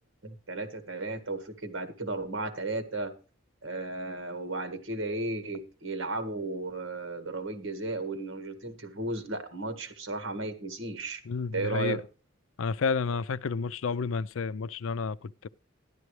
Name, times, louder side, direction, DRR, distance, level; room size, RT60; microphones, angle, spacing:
voice 1, 0.2-3.1 3.6-11.2 11.5-12.0, right 2 dB, 75° right, 1.8 m, -34 dB
voice 2, 11.3-12.0 12.6-15.5, left 5 dB, 75° left, 0.4 m, -31 dB
12.0 x 11.0 x 3.2 m
head